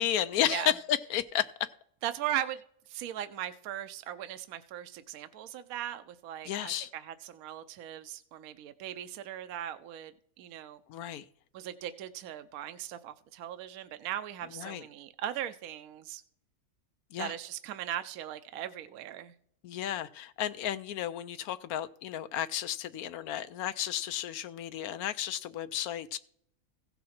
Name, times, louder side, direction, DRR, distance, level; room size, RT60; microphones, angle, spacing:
voice 1, 0.0-1.7 6.4-6.9 10.9-11.3 14.5-14.8 17.1-17.3 19.6-26.2, left 11 dB, 80° left, 12 dB, 1.1 m, -33 dB
voice 2, 2.0-2.6 2.9-10.8 11.5-16.2 17.2-19.3, right 11 dB, 75° right, 11 dB, 1.0 m, -38 dB
16.0 x 5.7 x 4.3 m, 0.69 s
omnidirectional pair, 1.6 m